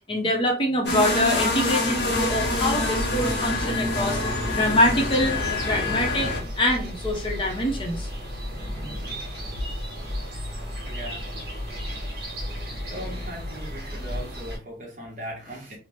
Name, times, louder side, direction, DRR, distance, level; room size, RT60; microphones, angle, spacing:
voice 1, 0.1-4.2 4.5-5.3 5.7-8.1, left 1 dB, 30° left, 1 dB, 0.7 m, -24 dB
sound 1, 0.8-6.4, left 2 dB, 85° left, 0.9 m, -26 dB
sound 2, 1.9-14.6, equal, 60° right, 1.2 m, -33 dB
voice 2, 10.8-11.3 12.4-15.8, equal, 45° right, -1 dB, 1.0 m, -39 dB
2.9 x 2.0 x 3.1 m, 0.35 s
head